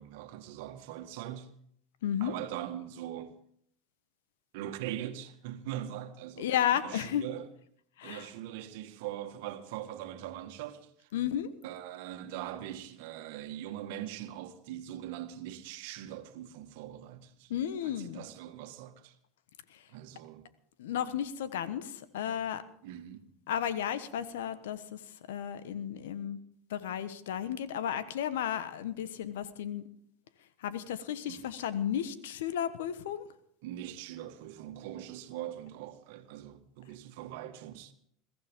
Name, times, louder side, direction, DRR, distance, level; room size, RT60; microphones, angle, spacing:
voice 1, 0.0-1.5 2.2-3.3 4.5-7.5 8.0-11.1 11.6-17.5 17.8-19.1 19.9-20.5 22.8-23.3 31.3-31.4 33.6-37.9, right 12 dB, 65° right, 1.7 m, -41 dB
voice 2, 2.0-2.3 6.4-7.2 8.0-8.3 11.1-11.5 17.5-18.2 19.7-19.8 20.8-22.6 23.5-25.0 25.3-26.4 26.7-29.8 30.6-33.2, left 10 dB, 75° left, 1.2 m, -33 dB
22.0 x 14.5 x 3.7 m
hypercardioid pair, 90°, 0 cm